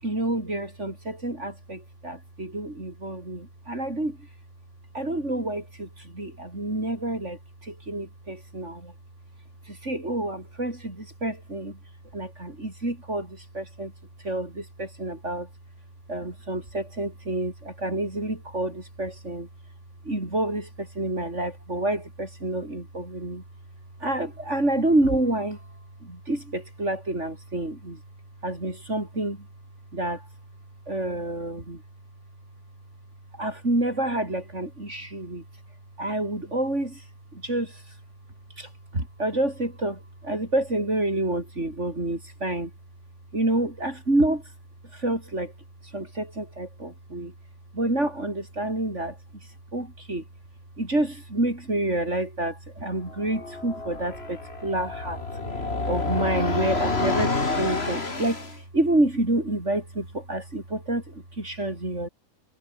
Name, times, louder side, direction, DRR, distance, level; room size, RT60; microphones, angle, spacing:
voice 1, 0.0-4.3 4.9-8.9 9.6-11.8 12.1-13.9 14.2-15.5 16.1-19.5 20.0-23.4 24.0-25.7 26.0-28.0 28.4-29.5 29.9-30.3 30.9-31.8 33.3-35.4 36.0-37.1 37.3-38.0 38.6-42.7 43.3-44.4 44.9-45.5 45.8-47.3 47.7-50.2 50.8-55.2 55.9-62.1, right 1 dB, 45° right, 6.3 m, -28 dB
sound 1, 53.1-58.6, left 3 dB, 40° left, 3.1 m, -29 dB
omnidirectional pair, 1.7 m